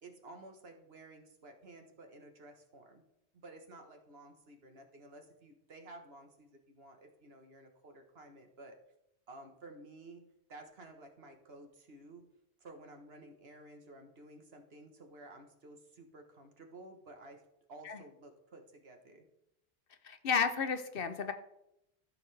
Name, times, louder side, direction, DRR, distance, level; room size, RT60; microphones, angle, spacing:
voice 1, 0.0-3.0 3.3-8.8 9.3-10.2 10.5-12.2 12.6-17.4 17.7-19.2, right 2 dB, 65° right, 4 dB, 1.5 m, -53 dB
voice 2, 20.0-21.3, left 6 dB, 60° left, 9 dB, 0.9 m, -32 dB
14.0 x 6.6 x 3.3 m, 0.82 s
omnidirectional pair, 1.1 m